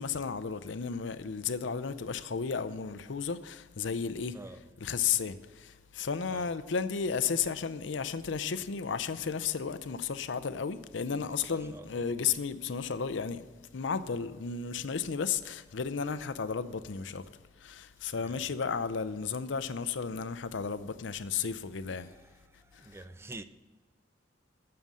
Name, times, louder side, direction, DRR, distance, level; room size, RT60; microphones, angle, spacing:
voice 1, 0.0-13.5 13.7-17.2 17.6-22.1, left 6 dB, 75° left, 0.6 m, -33 dB
voice 2, 11.1-11.9 18.2-18.5 22.7-23.4, right 2 dB, 15° right, 0.4 m, -47 dB
9.1 x 7.8 x 7.5 m
head